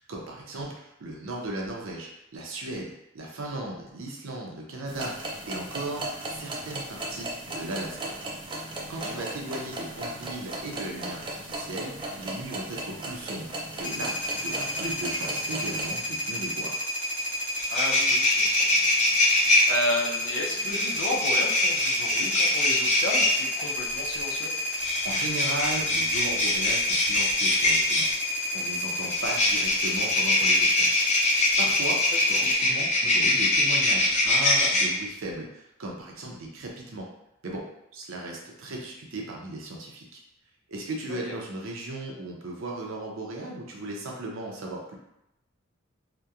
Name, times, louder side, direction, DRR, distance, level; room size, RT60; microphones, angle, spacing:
voice 1, 0.0-6.0 6.3-8.1 8.9-13.5 13.8-16.9 25.0-28.1 28.5-30.9 31.6-32.0 32.3-37.1 37.4-37.6 37.9-40.2 40.7-45.0, right 2 dB, 90° right, -1 dB, 0.6 m, -36 dB
sound 1, 4.9-16.0, right 1 dB, 25° right, 0.3 m, -36 dB
sound 2, 13.8-32.5, left 1 dB, 60° left, 1.0 m, -31 dB
sound 3, 17.2-17.3 17.6-19.6 20.7-23.3 24.7-28.1 29.1-34.9, left 2 dB, 35° left, 0.5 m, -23 dB
voice 2, 17.7-18.6 19.0-19.1 19.4-24.5 32.3-32.7 33.0-33.2 41.1-41.2, left 1 dB, 90° left, -2 dB, 0.5 m, -33 dB
2.8 x 2.1 x 2.3 m, 0.84 s
head